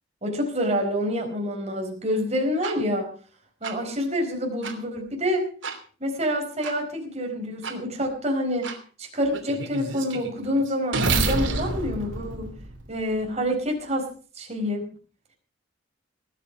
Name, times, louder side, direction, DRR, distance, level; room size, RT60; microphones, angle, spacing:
voice 1, 0.2-3.1 3.6-5.5 6.0-8.7 9.0-12.5 12.9-14.1 14.3-14.8, equal, 35° right, 1 dB, 4.6 m, -27 dB
sound 1, 2.6-2.7 3.6-3.7 4.6-4.7 5.6-5.8 6.6-6.7 7.6-7.7 8.6-8.8 9.3-13.2, right 3 dB, 75° right, 3.0 m, -29 dB
19.0 x 8.8 x 6.1 m, 0.41 s
head